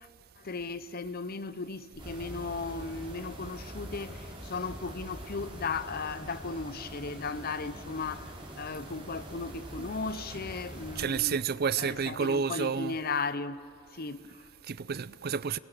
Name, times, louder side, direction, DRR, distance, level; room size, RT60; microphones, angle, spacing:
voice 1, 0.4-11.4 11.8-13.6 13.9-14.5, left 4 dB, 50° left, 0.8 m, -36 dB
sound 1, 2.0-11.1, right 1 dB, 25° right, 4.5 m, -44 dB
voice 2, 11.0-13.0 14.7-15.6, right 6 dB, 50° right, 0.5 m, -30 dB
28.5 x 22.5 x 6.8 m
head